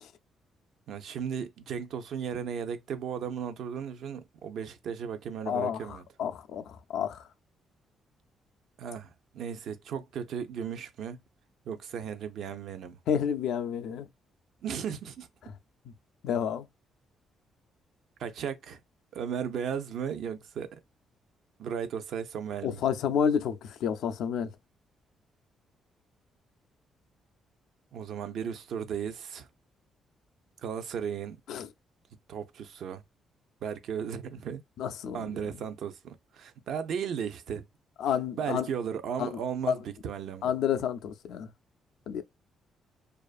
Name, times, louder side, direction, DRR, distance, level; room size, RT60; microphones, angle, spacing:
voice 1, 0.9-6.0 8.8-11.2 11.7-13.0 14.6-15.3 18.2-18.8 19.1-20.8 21.6-22.8 27.9-29.5 30.6-31.4 32.3-33.0 33.6-34.6 35.1-37.6 38.4-40.5, right 7 dB, 70° right, 0.5 m, -35 dB
voice 2, 5.5-7.2 13.1-14.1 16.2-16.7 22.6-24.5 31.5-31.7 34.8-35.3 38.0-38.7 39.2-39.4 39.7-39.8 40.4-41.5 42.1-42.2, left 8 dB, 80° left, 0.3 m, -30 dB
2.5 x 2.4 x 2.3 m
cardioid pair, 90°, 0 cm